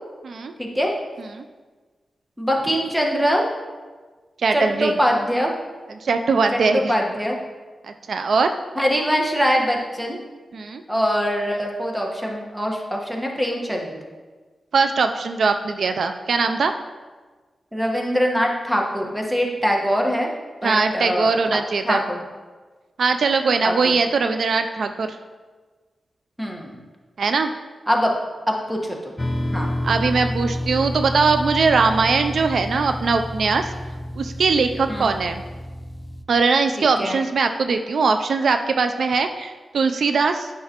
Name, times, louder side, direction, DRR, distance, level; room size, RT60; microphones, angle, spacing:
voice 1, 0.6-0.9 2.4-3.5 4.5-5.5 6.5-7.4 8.8-10.2 10.9-14.0 17.7-20.3 20.6-22.2 23.6-23.9 26.4-26.8 27.9-28.1 28.5-29.1 29.5-29.7 34.9-35.1 37.0-37.2, equal, 10° right, 0 dB, 1.2 m, -23 dB
voice 2, 4.4-4.9 6.0-6.9 8.1-8.5 10.5-10.8 14.7-16.7 20.6-22.0 23.0-25.2 27.2-27.5 29.8-33.7 34.2-35.4 36.3-40.5, right 4 dB, 75° right, 7 dB, 0.3 m, -21 dB
sound 1, 29.2-36.2, left 1 dB, 25° left, 0.5 m, -29 dB
9.4 x 5.8 x 2.9 m, 1.4 s
cardioid pair, 70°, 0 cm